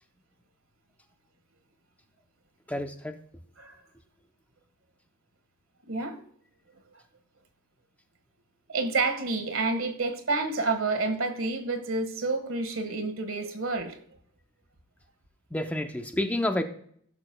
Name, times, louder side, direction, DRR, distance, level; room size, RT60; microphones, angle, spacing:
voice 1, 2.7-3.2 15.5-16.6, left 1 dB, 5° left, 6 dB, 0.5 m, -29 dB
voice 2, 5.9-6.2 8.7-14.0, right 3 dB, 80° right, 7 dB, 1.5 m, -29 dB
16.0 x 6.8 x 2.2 m, 0.64 s
head